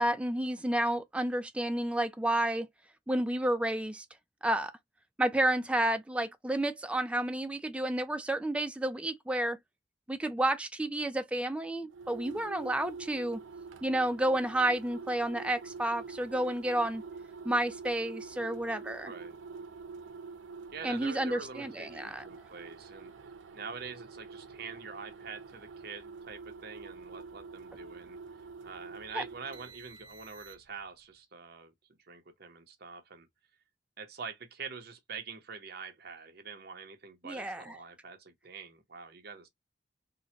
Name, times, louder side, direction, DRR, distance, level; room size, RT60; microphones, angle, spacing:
voice 1, 0.0-2.7 3.1-4.1 4.4-4.7 5.2-9.6 10.1-13.4 13.8-17.0 17.4-19.1 20.8-22.3 29.1-29.2 37.2-37.8, right 1 dB, 5° right, 0.3 m, -31 dB
sound 1, 11.9-30.9, right 4 dB, 85° right, 0.6 m, -47 dB
voice 2, 12.3-12.6 19.0-19.4 20.7-23.1 23.5-28.2 28.6-31.7 32.1-33.3 34.0-39.5, right 5 dB, 55° right, 0.9 m, -45 dB
3.8 x 2.2 x 2.8 m
head